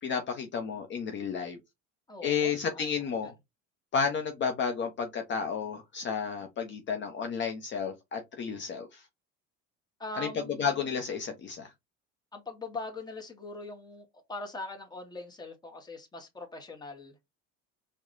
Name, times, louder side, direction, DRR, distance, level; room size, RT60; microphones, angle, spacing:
voice 1, 0.0-1.6 2.2-3.3 3.9-9.0 10.1-10.3 10.6-11.7, left 6 dB, 40° left, 0.7 m, -32 dB
voice 2, 2.1-3.3 10.0-11.0 12.3-17.2, left 2 dB, 15° left, 1.0 m, -42 dB
4.6 x 2.2 x 2.5 m
cardioid pair, 110°, 29 cm